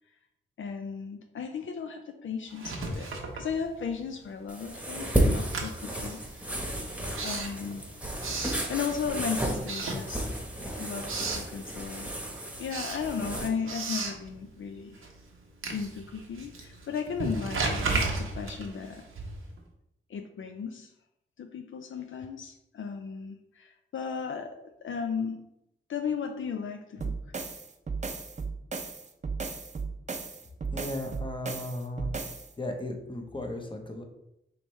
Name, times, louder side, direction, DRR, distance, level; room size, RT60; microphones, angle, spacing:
voice 1, 0.6-6.7 7.2-7.8 8.7-10.3 10.8-12.1 12.6-15.0 15.7-19.1 20.1-20.9 21.4-25.4 25.9-27.1, left 6 dB, 70° left, 6 dB, 0.4 m, -35 dB
Writing, 2.5-4.1 4.4-9.2 9.6-10.6 10.8-11.5 11.9-19.6, right 3 dB, 85° right, 0.8 m, -35 dB
sound 1, 4.5-13.5, right 1 dB, 5° right, 1.0 m, -32 dB
sound 2, 27.0-32.5, right 4 dB, 35° right, 0.6 m, -35 dB
voice 2, 30.7-32.1 32.6-34.0, left 1 dB, 25° left, 3 dB, 0.8 m, -36 dB
5.0 x 3.1 x 3.2 m, 0.83 s
cardioid pair, 70°, 21 cm